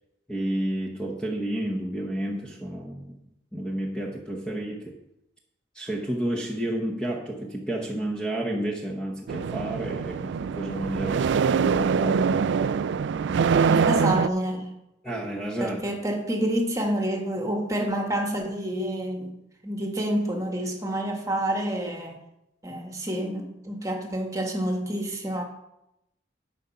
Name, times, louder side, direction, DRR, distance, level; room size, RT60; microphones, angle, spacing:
voice 1, 0.3-3.2 3.5-5.0 5.7-12.5 15.0-15.8, right 1 dB, 5° left, -2 dB, 0.9 m, -31 dB
sound 1, 9.3-14.3, right 6 dB, 65° right, 0.3 m, -24 dB
voice 2, 13.7-14.7 15.6-19.4 19.6-22.2 22.6-25.4, right 1 dB, 15° right, 2 dB, 1.4 m, -28 dB
12.0 x 5.2 x 5.7 m, 0.87 s
head